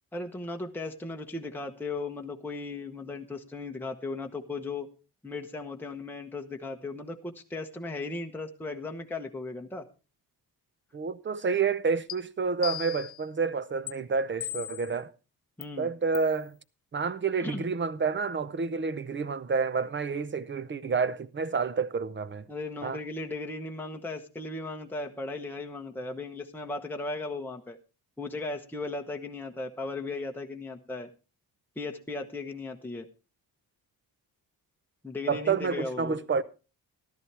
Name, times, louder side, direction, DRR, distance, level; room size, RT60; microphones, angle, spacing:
voice 1, 0.1-4.9 5.2-9.8 15.6-15.9 17.4-17.7 22.5-27.8 28.2-31.1 31.8-33.1 35.0-36.2, left 3 dB, 5° left, 1.0 m, -36 dB
voice 2, 10.9-15.1 15.8-16.6 16.9-22.4 22.8-23.0 35.3-36.4, right 5 dB, 30° right, 0.7 m, -29 dB
sound 1, 12.1-12.2 12.6-13.2 13.9-14.0 14.4-14.9 15.6-15.7 16.1-16.4, left 12 dB, 70° left, 0.8 m, -37 dB
14.0 x 12.5 x 3.4 m
cardioid pair, 135°, 39 cm